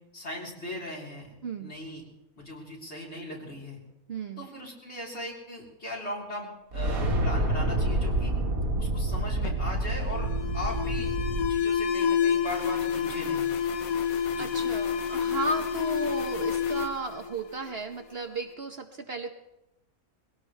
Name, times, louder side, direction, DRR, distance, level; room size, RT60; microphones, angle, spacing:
voice 1, 0.1-1.3 1.6-2.0 2.4-3.8 4.4-8.3 8.8-13.5 14.3-14.5, left 1 dB, 50° left, -4 dB, 4.0 m, -38 dB
voice 2, 1.4-1.7 4.1-4.5 14.4-19.3, right 3 dB, 50° right, 5 dB, 1.0 m, -34 dB
sound 1, 6.7-11.5, right 1 dB, 80° right, 2.3 m, -28 dB
Alarm, 9.4-18.0, left 7 dB, 80° left, 1.4 m, -29 dB
21.5 x 17.0 x 3.3 m, 0.91 s
omnidirectional pair, 1.5 m